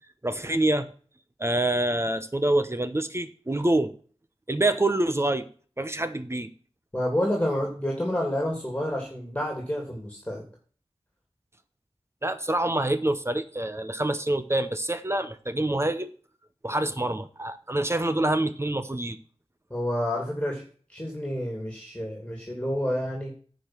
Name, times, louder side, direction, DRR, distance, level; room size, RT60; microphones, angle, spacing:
voice 1, 0.2-0.9 1.4-3.9 4.5-5.5 5.8-6.5 12.2-16.1 16.6-19.2, right 1 dB, 25° right, 10 dB, 0.9 m, -26 dB
voice 2, 6.9-10.4 19.7-20.6 20.9-23.3, equal, 10° left, 0 dB, 2.9 m, -29 dB
10.5 x 5.2 x 5.9 m, 0.42 s
wide cardioid pair, 80°, 11 cm